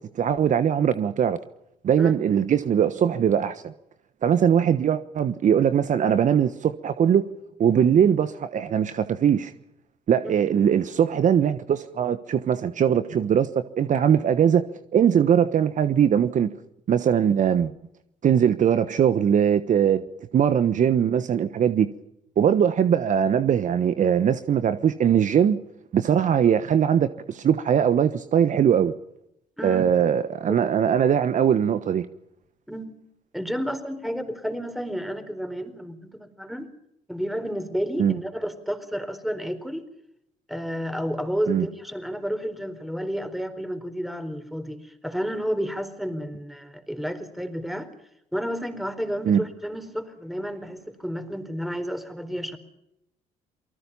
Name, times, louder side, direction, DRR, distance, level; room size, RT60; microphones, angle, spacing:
voice 1, 0.1-1.4 1.8-3.7 4.2-7.3 7.6-9.5 10.1-16.5 16.9-17.7 18.2-20.0 20.3-21.9 22.4-25.6 25.9-28.9 29.6-32.1 38.0-38.2 41.5-41.7 49.3-49.4, right 8 dB, 50° right, 1.2 m, -21 dB
voice 2, 29.6-29.9 30.5-30.6 32.7-32.9 33.3-36.7 37.1-39.9 40.5-47.9 48.3-52.6, equal, ahead, 4.3 m, -31 dB
28.5 x 19.5 x 5.6 m
hypercardioid pair, 65°, 16 cm